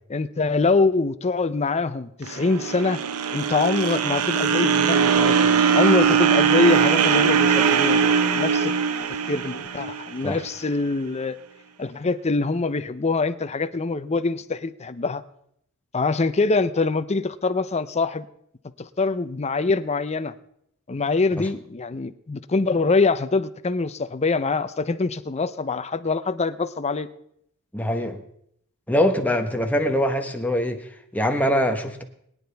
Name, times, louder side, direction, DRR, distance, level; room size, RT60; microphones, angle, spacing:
voice 1, 0.1-3.0 3.3-8.7 9.3-11.4 11.8-15.2 15.9-18.3 18.8-20.3 20.9-27.1, left 3 dB, 30° left, 12 dB, 0.6 m, -24 dB
sound 1, 2.3-10.5, right 6 dB, 80° right, 0.7 m, -20 dB
voice 2, 27.7-28.2 28.9-32.0, equal, 5° left, 4 dB, 1.1 m, -23 dB
22.5 x 9.7 x 3.5 m, 0.73 s
head